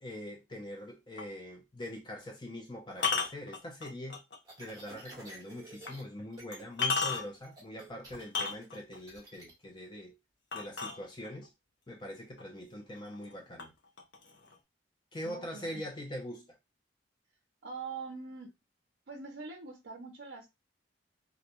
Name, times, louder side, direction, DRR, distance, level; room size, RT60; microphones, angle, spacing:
voice 1, 0.0-4.2 4.6-10.2 10.5-11.5 11.9-13.7 15.1-16.6, left 1 dB, 25° left, 0.4 m, -43 dB
sound 1, 1.2-1.4 2.9-4.4 4.9-5.0 5.9-6.0 6.5-7.5 8.2-9.0 10.5-11.5 12.4-12.5 12.9-13.3 13.6-14.5, left 5 dB, 70° left, 0.7 m, -33 dB
sound 2, 4.4-6.0 6.3-6.7 6.9-9.5, right 2 dB, 20° right, 0.9 m, -51 dB
voice 2, 15.2-15.8 17.6-18.5 19.1-20.5, right 4 dB, 65° right, 0.5 m, -43 dB
2.5 x 2.1 x 2.8 m
head